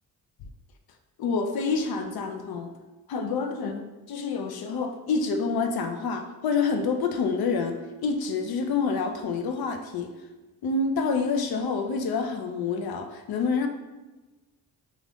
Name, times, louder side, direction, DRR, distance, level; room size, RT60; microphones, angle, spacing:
voice 1, 1.2-2.7 3.1-10.1 10.6-13.7, left 4 dB, 60° left, 5 dB, 0.5 m, -27 dB
2.5 x 2.5 x 3.4 m, 1.2 s
supercardioid pair, 50°, 43 cm